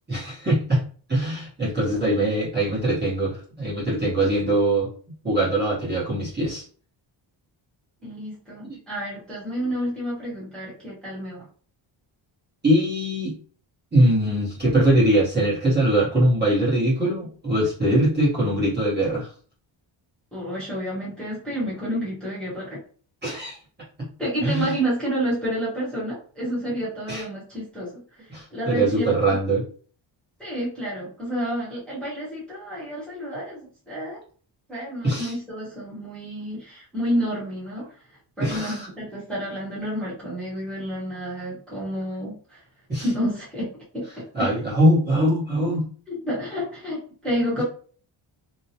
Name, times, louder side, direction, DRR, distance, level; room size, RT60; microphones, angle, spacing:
voice 1, 0.1-0.8 1.1-4.9 5.2-6.6 8.7-8.8 12.6-13.3 13.9-19.3 23.2-23.6 24.4-24.7 27.1-27.2 28.3-29.6 35.0-35.3 38.4-38.9 42.9-43.0 44.3-45.9, right 1 dB, 20° right, -9 dB, 1.0 m, -22 dB
voice 2, 8.0-11.5 20.3-22.8 24.2-28.3 28.5-29.1 30.4-34.2 34.7-37.9 38.4-42.6 43.0-44.5 46.1-47.6, equal, ahead, -9 dB, 1.0 m, -30 dB
2.8 x 2.2 x 2.8 m, 0.43 s
wide cardioid pair, 180°, 48 cm